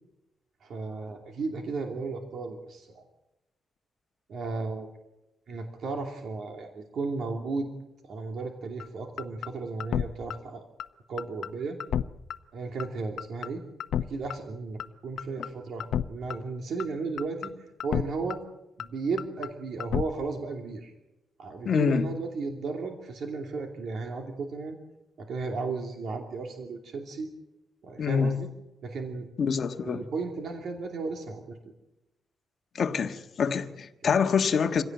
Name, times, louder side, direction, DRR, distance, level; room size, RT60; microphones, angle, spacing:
voice 1, 0.6-3.0 4.3-4.9 5.5-7.7 8.0-10.6 11.1-11.8 12.5-13.6 14.1-17.5 17.8-18.4 18.8-20.9 21.4-24.8 25.2-27.3 27.8-28.5 28.8-29.3 29.8-31.6, right 4 dB, 60° right, 3 dB, 2.8 m, -34 dB
sound 1, 8.8-8.9 9.2-9.5 9.8-10.0 10.3-10.4 10.8-10.9 11.2-11.5 11.8-12.0 12.3-12.4 12.8-12.9 13.2-13.5 13.8-14.0 14.3-14.4 14.8-14.9 15.2-15.5 15.8-16.0 16.3-16.4 16.8-16.9 17.2-17.5 17.8-18.0 18.3-18.4 18.8-18.9 19.2-19.5 19.8-20.0, left 9 dB, 80° left, 0.9 m, -29 dB
voice 2, 21.6-22.1 28.0-28.4 29.4-30.0 32.7-34.8, left 6 dB, 50° left, 6 dB, 1.6 m, -26 dB
26.5 x 17.0 x 9.1 m, 0.97 s
cardioid pair, 140°, 0 cm